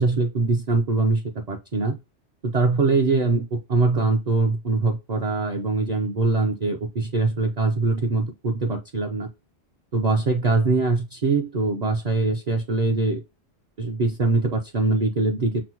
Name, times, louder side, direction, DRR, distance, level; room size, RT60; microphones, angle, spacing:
voice 1, 0.0-2.0 2.5-9.3 9.9-13.2 13.8-15.6, right 3 dB, 45° right, 2 dB, 0.6 m, -23 dB
5.9 x 2.0 x 2.9 m, 0.25 s
omnidirectional pair, 1.2 m